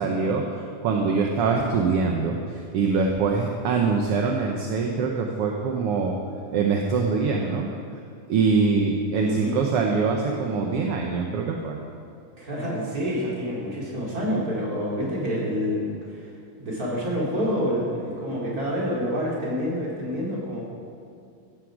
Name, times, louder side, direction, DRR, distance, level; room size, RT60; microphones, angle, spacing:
voice 1, 0.0-6.2 6.5-7.7 8.3-11.8, right 4 dB, 60° right, 1 dB, 1.7 m, -24 dB
voice 2, 9.2-9.6 12.4-20.6, equal, 30° right, -5 dB, 4.1 m, -28 dB
15.5 x 14.5 x 5.1 m, 2.4 s
omnidirectional pair, 3.4 m